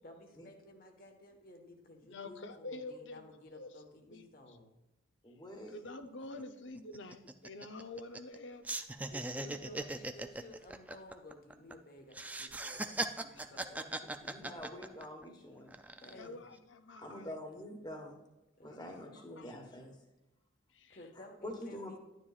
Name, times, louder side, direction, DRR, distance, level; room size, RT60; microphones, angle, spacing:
voice 1, 0.0-4.6 5.7-5.8 9.1-14.7 16.0-16.5 18.6-19.0 20.9-22.0, left 1 dB, 45° left, 4 dB, 1.4 m, -55 dB
voice 2, 2.1-3.2 3.5-3.7 4.1-4.2 5.7-8.6 9.2-9.8 13.5-13.6 16.1-17.4 18.8-19.6 20.7-21.0, left 2 dB, 70° left, 8 dB, 0.7 m, -47 dB
voice 3, 5.2-5.7 14.2-15.7 17.0-18.2 18.6-20.0 21.2-22.0, left 1 dB, 20° left, 2 dB, 1.2 m, -46 dB
sound 1, 5.9-6.0 6.2-6.4 6.8-8.4 8.6-11.7 12.1-15.2 15.7-16.3, right 2 dB, 10° right, 0.3 m, -39 dB
11.0 x 9.9 x 2.4 m, 1.0 s
head